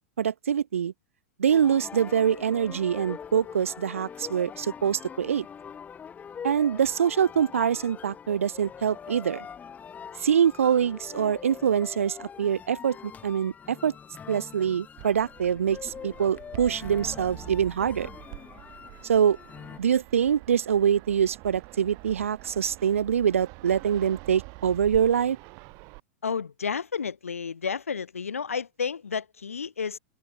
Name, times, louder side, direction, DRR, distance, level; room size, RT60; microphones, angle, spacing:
voice 1, 0.2-0.9 1.4-5.4 6.4-9.5 10.2-13.0 13.2-13.9 14.3-18.1 19.0-19.4 19.8-25.4, right 8 dB, 75° right, 1.1 m, -24 dB
sound 1, 1.5-19.8, left 7 dB, 20° left, 3.9 m, -43 dB
Fixed-wing aircraft airplane, 15.0-26.0, right 31 dB, 45° right, 3.1 m, -45 dB
voice 2, 26.2-30.0, left 6 dB, 80° left, 2.7 m, -31 dB
open air
figure-of-eight pair, 100°, 7 cm